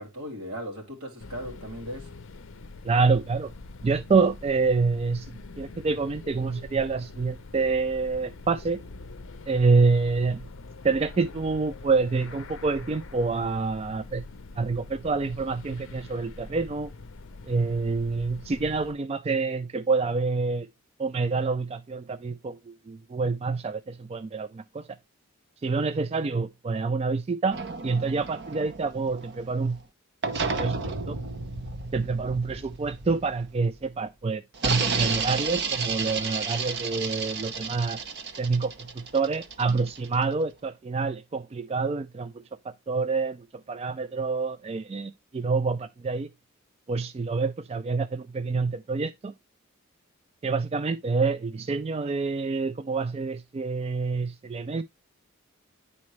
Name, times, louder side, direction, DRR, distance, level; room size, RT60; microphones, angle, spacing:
voice 1, 0.0-2.2, equal, 85° right, 2.8 m, -37 dB
sound 1, 1.2-18.9, left 3 dB, 60° left, 0.6 m, -44 dB
voice 2, 2.8-3.5 3.8-8.8 9.5-10.5 10.8-14.2 14.6-16.9 17.5-20.7 21.0-24.9 25.6-29.8 30.6-31.2 31.9-38.0 38.4-42.3 42.6-46.3 46.9-49.3 50.4-54.8, right 4 dB, 30° right, 0.3 m, -27 dB
sound 2, 27.5-29.8 30.2-33.9 34.5-40.3, right 4 dB, 50° right, 0.8 m, -32 dB
9.7 x 4.2 x 3.1 m
head